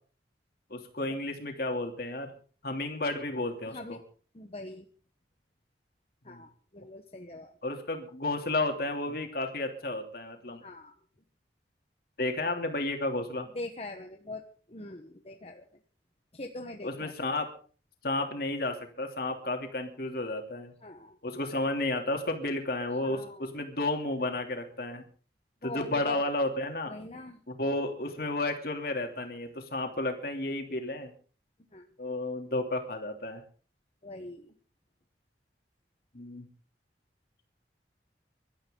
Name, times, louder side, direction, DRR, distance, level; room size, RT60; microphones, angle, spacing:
voice 1, 0.7-2.3 2.6-4.0 6.3-6.4 7.6-10.6 12.2-13.5 16.8-17.5 18.0-20.7 21.2-25.0 25.6-26.9 27.6-31.1 32.0-33.4 36.1-36.5, left 2 dB, 55° left, 4 dB, 3.1 m, -32 dB
voice 2, 3.7-4.0 4.3-4.9 6.2-7.5 10.6-11.0 13.5-14.4 14.7-15.8 16.3-17.1 20.8-21.2 23.0-23.7 25.6-26.3 26.9-27.4 31.7-31.8 34.0-34.5, left 1 dB, 35° left, 4 dB, 1.2 m, -42 dB
24.5 x 13.0 x 3.9 m, 0.42 s
head